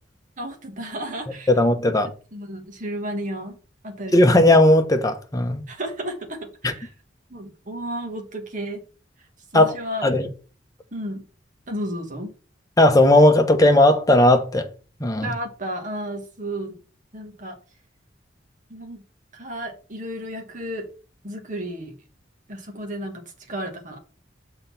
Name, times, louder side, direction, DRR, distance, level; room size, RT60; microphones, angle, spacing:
voice 1, 0.4-1.5 2.3-3.6 3.8-4.4 5.7-6.9 7.3-8.8 9.5-10.1 10.9-11.2 11.7-12.3 15.2-16.8 17.1-17.6 18.7-19.0 19.3-20.9 21.2-21.9 22.5-24.0, right 1 dB, 40° right, 1.4 m, -33 dB
voice 2, 1.5-2.1 4.1-5.6 6.6-6.7 9.5-9.7 10.0-10.3 12.8-14.7 15.0-15.3, left 1 dB, 20° left, 1.0 m, -16 dB
6.5 x 3.9 x 5.7 m
head